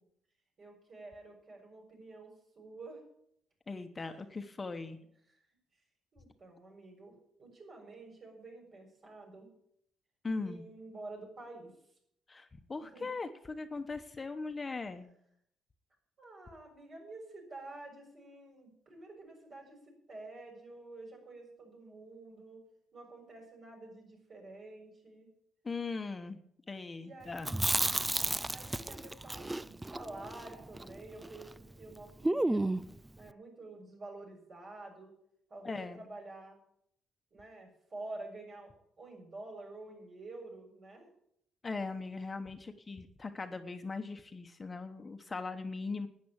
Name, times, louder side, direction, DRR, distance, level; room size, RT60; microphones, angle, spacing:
voice 1, 0.6-2.3 2.5-3.0 5.3-5.4 6.1-9.5 10.4-11.7 12.9-13.0 16.2-22.6 22.9-25.3 27.0-27.8 28.5-32.8 33.2-35.1 35.5-36.6 37.3-38.7 39.0-41.1, right 2 dB, 45° right, 1 dB, 6.8 m, -49 dB
voice 2, 3.7-5.0 10.2-10.6 12.3-15.1 25.6-26.4 26.7-27.5 35.6-36.0 41.6-46.1, left 3 dB, 30° left, 7 dB, 1.2 m, -39 dB
Chewing mastication, 27.4-31.6 31.8-31.9 32.2-33.0, right 2 dB, 15° right, 0.4 m, -32 dB
11.0 x 9.5 x 8.9 m, 0.71 s
cardioid pair, 90°, 0 cm